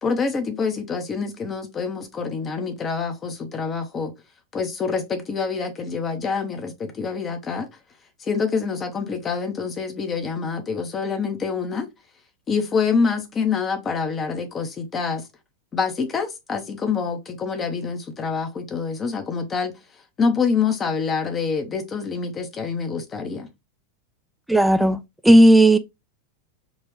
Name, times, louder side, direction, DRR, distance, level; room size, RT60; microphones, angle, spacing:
voice 1, 0.0-4.1 4.5-7.7 8.2-11.9 12.5-15.3 15.7-23.5, left 5 dB, 25° left, 0.8 m, -26 dB
voice 2, 24.5-25.0 25.2-25.8, right 1 dB, 5° right, 0.4 m, -13 dB
3.9 x 2.4 x 3.1 m
figure-of-eight pair, 90°, 0 cm